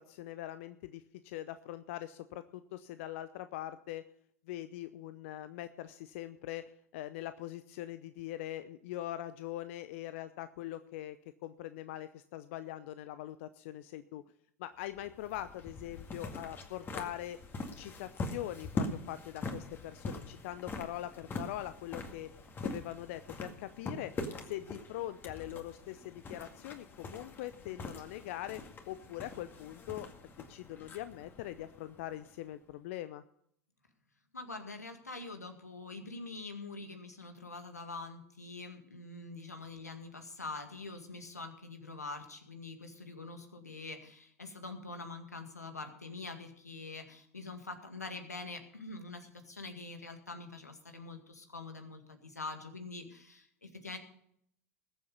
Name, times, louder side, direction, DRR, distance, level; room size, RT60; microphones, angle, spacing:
voice 1, 0.0-4.0 4.5-6.6 6.9-11.2 11.4-14.2 14.6-17.4 17.8-22.3 22.6-24.1 24.4-28.6 28.9-33.2, left 14 dB, 55° left, 12 dB, 0.7 m, -42 dB
sound 1, 14.9-32.5, left 3 dB, 25° left, 2.1 m, -43 dB
voice 2, 34.3-54.0, left 3 dB, 85° left, 6 dB, 2.0 m, -45 dB
20.5 x 7.8 x 5.3 m, 0.68 s
figure-of-eight pair, 90°, 9 cm